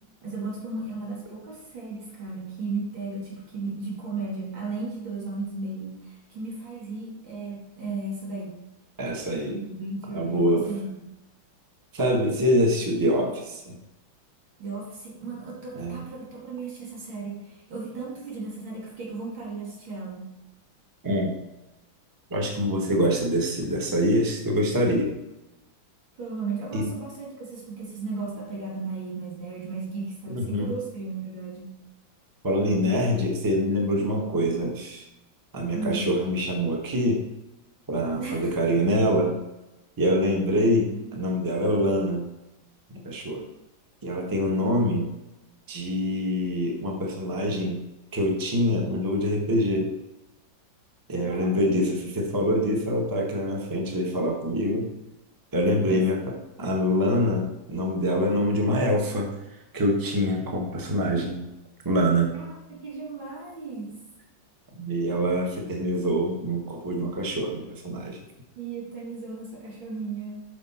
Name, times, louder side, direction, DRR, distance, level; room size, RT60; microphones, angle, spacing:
voice 1, 0.2-8.6 9.5-11.0 14.6-20.3 26.2-31.8 35.7-36.1 38.2-38.5 40.9-41.2 51.2-51.9 55.5-56.4 62.3-63.9 68.5-70.4, right 3 dB, 85° right, -4 dB, 3.3 m, -35 dB
voice 2, 9.0-9.6 10.1-10.7 11.9-13.8 15.7-16.0 21.0-21.4 22.3-25.1 26.7-26.9 30.3-30.7 32.4-35.1 35.5-37.2 37.9-39.3 40.0-42.3 42.9-43.4 44.0-45.1 45.7-47.8 48.1-49.9 51.1-54.9 55.5-59.3 59.7-61.4 61.8-62.3 64.7-68.2, equal, 15° right, 1 dB, 1.0 m, -25 dB
8.4 x 6.1 x 4.3 m, 0.97 s
omnidirectional pair, 2.1 m